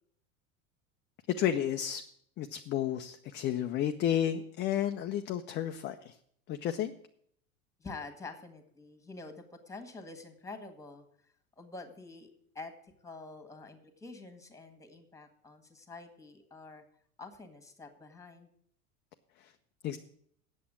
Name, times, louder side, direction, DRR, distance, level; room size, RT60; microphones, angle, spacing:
voice 1, 1.3-2.0 2.4-6.2 6.5-6.9 19.4-19.5 19.8-20.0, left 10 dB, 25° left, 7 dB, 0.4 m, -32 dB
voice 2, 7.8-11.0 11.6-16.8 17.2-18.5, left 3 dB, 5° left, 6 dB, 1.6 m, -47 dB
8.5 x 7.2 x 8.5 m, 0.67 s
hypercardioid pair, 85°, 44 cm